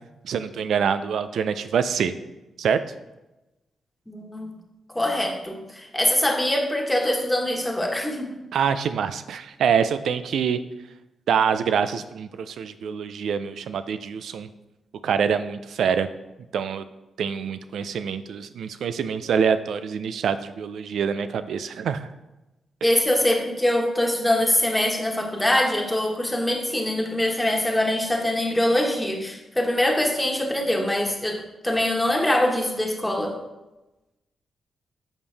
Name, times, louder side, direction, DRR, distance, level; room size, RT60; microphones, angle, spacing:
voice 1, 0.2-2.1 2.6-2.8 8.5-10.6 11.3-14.5 15.0-16.1 16.5-16.8 17.2-22.1, right 7 dB, 75° right, 12 dB, 0.4 m, -25 dB
voice 2, 4.1-4.5 4.9-8.4 22.8-33.3, left 1 dB, 10° left, 1 dB, 1.4 m, -23 dB
7.2 x 5.3 x 3.3 m, 1.0 s
supercardioid pair, 50°, 0 cm